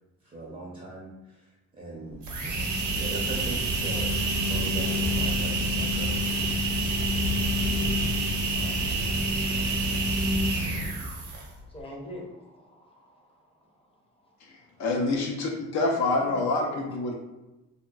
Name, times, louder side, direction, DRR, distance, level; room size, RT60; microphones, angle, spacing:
voice 1, 0.2-1.4 1.7-2.2 3.0-4.2 4.5-6.5, right 2 dB, 30° right, -4 dB, 0.6 m, -39 dB
sound 1, 2.1-11.6, right 1 dB, 65° right, 0.7 m, -27 dB
voice 2, 8.5-8.9 9.9-14.4 16.2-16.3 16.7-16.8, left 1 dB, 20° left, -1 dB, 0.6 m, -46 dB
voice 3, 14.4-17.1, left 2 dB, 65° left, 0 dB, 0.5 m, -27 dB
2.8 x 2.1 x 2.3 m, 1.0 s
cardioid pair, 90°, 30 cm